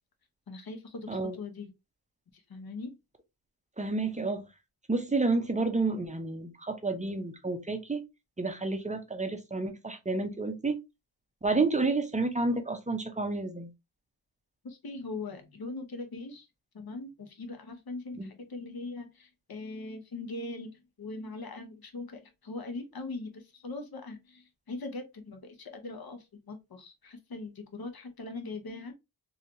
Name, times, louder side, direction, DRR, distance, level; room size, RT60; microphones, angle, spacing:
voice 1, 0.5-1.7 2.3-3.0 14.6-16.5 16.7-28.9, left 3 dB, 60° left, 0.9 m, -41 dB
voice 2, 3.8-4.4 4.9-8.0 8.4-10.8 11.4-13.7 18.2-18.3, right 3 dB, 20° right, 0.5 m, -30 dB
3.2 x 2.7 x 2.6 m
wide cardioid pair, 110°, 41 cm